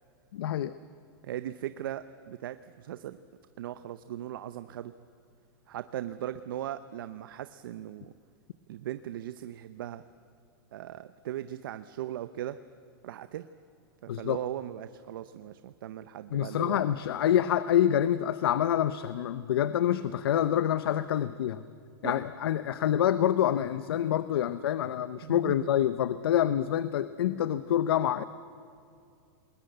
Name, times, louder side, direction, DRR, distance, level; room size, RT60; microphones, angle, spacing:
voice 1, 0.3-0.7 14.1-14.4 16.3-21.6 22.0-28.2, left 10 dB, 85° left, 13 dB, 0.8 m, -27 dB
voice 2, 1.2-3.2 3.6-4.9 5.7-8.1 8.7-10.0 10.7-12.6 13.0-13.5 14.0-16.8 22.0-22.2 25.2-25.6, right 12 dB, 65° right, 12 dB, 0.7 m, -38 dB
28.0 x 21.0 x 8.0 m, 2.4 s
supercardioid pair, 175°, 12 cm